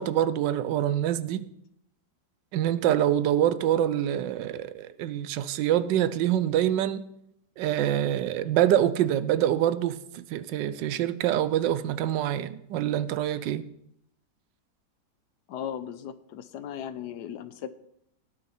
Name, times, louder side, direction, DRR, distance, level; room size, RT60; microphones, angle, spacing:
voice 1, 0.0-1.5 2.5-7.1 7.6-13.7, right 11 dB, 85° right, 1.3 m, -25 dB
voice 2, 15.5-17.7, left 9 dB, 75° left, 1.2 m, -37 dB
18.0 x 6.6 x 4.3 m
omnidirectional pair, 1.9 m